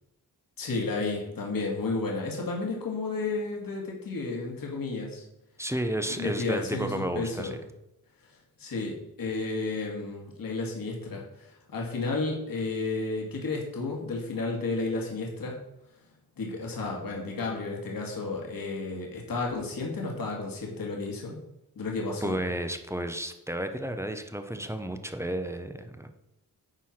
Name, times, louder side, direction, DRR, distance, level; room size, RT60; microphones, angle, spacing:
voice 1, 0.6-5.3 6.1-7.5 8.6-15.6 16.4-21.4 21.8-22.4, left 3 dB, 65° left, -1 dB, 2.2 m, -32 dB
voice 2, 5.6-7.6 22.2-26.1, right 1 dB, 5° right, 7 dB, 0.7 m, -32 dB
9.8 x 4.6 x 5.9 m, 0.88 s
wide cardioid pair, 130°, 36 cm